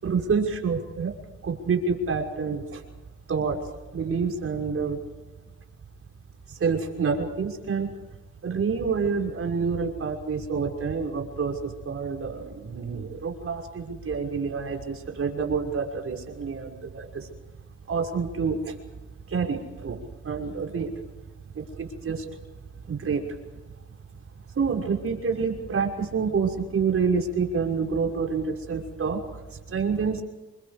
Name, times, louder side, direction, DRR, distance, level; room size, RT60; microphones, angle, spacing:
voice 1, 0.0-1.1 1.4-2.8 3.3-3.7 3.9-5.0 6.5-7.9 8.4-17.3 17.9-18.8 19.3-20.0 20.2-20.9 21.5-22.3 22.9-23.4 24.6-29.4 29.7-30.2, right 5 dB, 45° right, 2 dB, 5.9 m, -28 dB
28.5 x 24.0 x 5.3 m, 1.2 s
cardioid pair, 90°, 30 cm